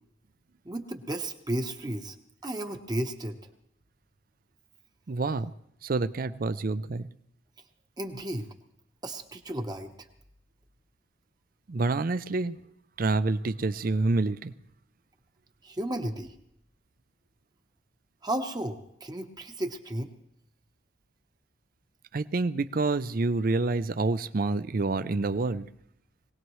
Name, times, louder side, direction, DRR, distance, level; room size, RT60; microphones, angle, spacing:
voice 1, 0.6-2.2 2.4-3.4 8.0-8.5 9.0-9.9 15.6-16.3 18.2-20.1, right 1 dB, 20° right, 5 dB, 0.9 m, -33 dB
voice 2, 5.1-5.5 5.8-7.1 11.7-12.6 13.0-14.5 22.1-25.7, right 3 dB, 45° right, 14 dB, 0.5 m, -27 dB
22.5 x 18.0 x 3.1 m, 0.79 s
head